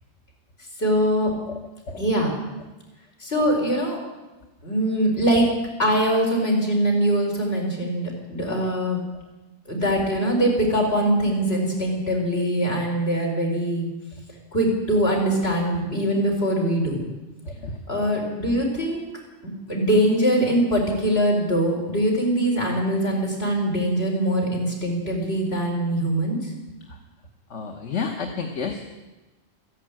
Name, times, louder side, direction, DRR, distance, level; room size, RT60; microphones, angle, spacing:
voice 1, 0.8-1.3 2.0-2.3 3.2-4.0 4.6-5.5 5.8-9.0 9.7-13.9 14.5-17.1 17.9-19.0 19.4-26.5, right 1 dB, 60° left, -1 dB, 4.6 m, -22 dB
voice 2, 17.4-17.8 26.9-27.0 27.5-28.8, left 5 dB, 80° left, 3 dB, 1.5 m, -31 dB
14.0 x 11.5 x 8.9 m, 1.1 s
omnidirectional pair, 1.2 m